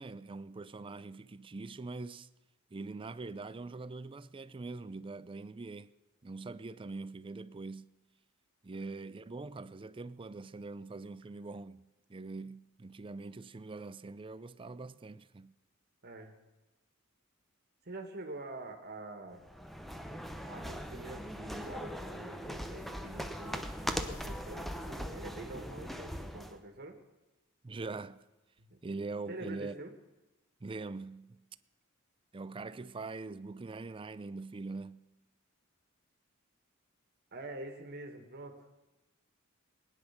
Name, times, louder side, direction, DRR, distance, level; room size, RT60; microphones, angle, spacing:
voice 1, 0.0-2.3 2.7-5.9 6.2-7.9 8.6-15.5 27.6-28.2 28.8-29.8 30.6-31.4 32.3-35.0, right 3 dB, 25° right, 0.5 m, -43 dB
voice 2, 16.0-16.4 17.8-19.4 20.5-23.7 24.0-27.0 28.6-28.8 29.3-30.0 37.3-38.7, right 2 dB, 50° right, 1.9 m, -46 dB
sound 1, 19.4-26.6, equal, ahead, 0.9 m, -40 dB
20.5 x 10.0 x 5.9 m
head